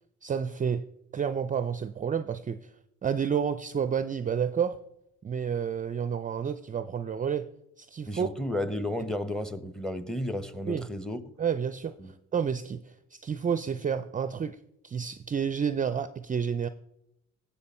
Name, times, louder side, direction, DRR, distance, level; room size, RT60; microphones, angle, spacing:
voice 1, 0.2-0.9 1.1-2.7 3.0-4.8 5.2-7.5 7.8-8.3 10.7-10.9 11.4-14.6 14.8-16.7, right 7 dB, 25° right, 0.4 m, -30 dB
voice 2, 8.1-11.2 12.0-12.1, left 1 dB, ahead, 0.8 m, -33 dB
17.0 x 7.2 x 4.3 m
cardioid pair, 90°, 30 cm